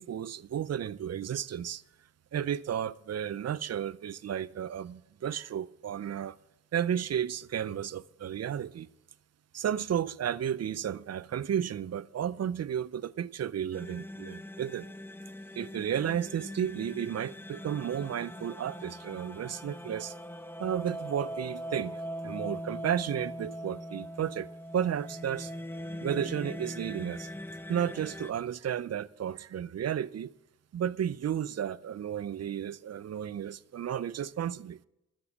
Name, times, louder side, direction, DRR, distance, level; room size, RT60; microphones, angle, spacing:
voice 1, 0.0-1.8 2.3-6.4 6.7-8.9 9.5-14.9 15.5-20.2 20.6-25.5 26.0-27.3 27.7-30.3 30.7-34.8, right 9 dB, 55° right, 0.6 m, -33 dB
sound 1, 13.7-28.3, equal, 5° left, 0.7 m, -41 dB
13.0 x 7.4 x 7.2 m
cardioid pair, 55°, 31 cm